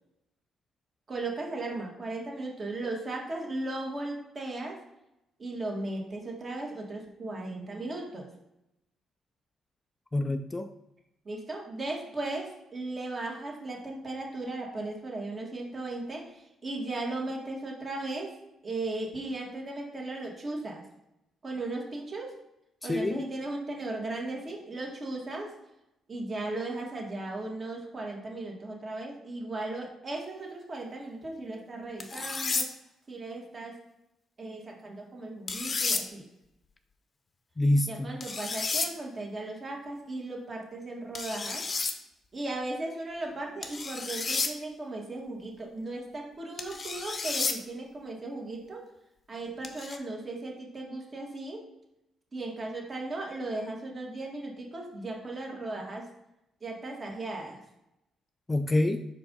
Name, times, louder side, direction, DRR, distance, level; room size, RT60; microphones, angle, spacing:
voice 1, 1.1-4.8 5.4-8.3 11.3-18.3 18.6-20.8 21.4-22.3 22.8-25.5 26.1-32.7 33.1-33.8 34.4-36.3 37.8-41.6 42.3-48.8 49.3-51.6 52.3-56.0 56.6-57.6, right 2 dB, 35° right, -1 dB, 1.7 m, -36 dB
voice 2, 10.1-10.7 22.8-23.2 37.6-38.2 58.5-59.0, left 1 dB, 20° left, 8 dB, 0.4 m, -26 dB
sound 1, 32.0-32.7 35.5-36.0 38.2-38.9 41.1-41.9 43.6-44.5 46.6-47.6 49.6-50.0, left 4 dB, 35° left, 0.7 m, -31 dB
4.7 x 3.7 x 5.4 m, 0.88 s
cardioid pair, 90°, 0 cm